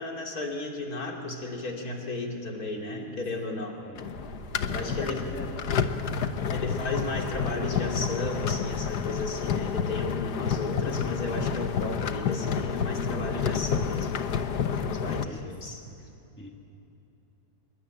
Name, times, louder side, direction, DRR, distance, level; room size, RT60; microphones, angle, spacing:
voice 1, 0.0-3.8 4.7-5.3 6.5-14.1 14.7-15.8, left 2 dB, 65° left, 1 dB, 3.3 m, -34 dB
voice 2, 2.6-3.2 3.8-4.1 4.6-5.5 15.3-15.7 16.4-16.5, left 1 dB, 5° left, 1 dB, 2.1 m, -43 dB
sound 1, 4.0-15.3, left 7 dB, 85° left, 1.6 m, -29 dB
Truck, 4.1-9.7, right 3 dB, 40° right, 2.1 m, -44 dB
26.0 x 22.5 x 9.0 m, 2.9 s
omnidirectional pair, 1.7 m